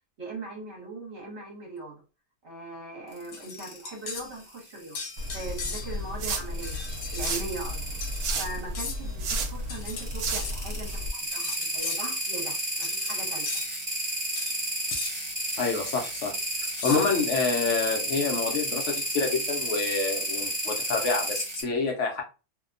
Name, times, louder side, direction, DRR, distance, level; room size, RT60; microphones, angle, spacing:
voice 1, 0.2-2.0 2.4-5.0 5.3-6.8 7.1-7.9 8.4-13.6, right 2 dB, 50° right, 1.1 m, -40 dB
sound 1, 3.1-3.8 4.4-5.7 6.5-8.6 9.7-21.6, right 1 dB, 25° right, 0.6 m, -32 dB
sound 2, 3.3-4.3 5.0-6.1 6.6-7.4 8.0-8.2 8.8-9.1 9.7-10.6 11.3-12.1 12.8-13.2 13.5-13.7 14.4-14.5 14.9-15.2 16.0-16.1 16.8-17.3, left 5 dB, 85° left, 1.1 m, -37 dB
sound 3, 5.2-11.1, right 1 dB, 75° right, 1.0 m, -33 dB
voice 2, 15.6-16.3 16.8-22.2, left 4 dB, 65° left, 0.8 m, -27 dB
2.7 x 2.1 x 2.5 m
omnidirectional pair, 1.7 m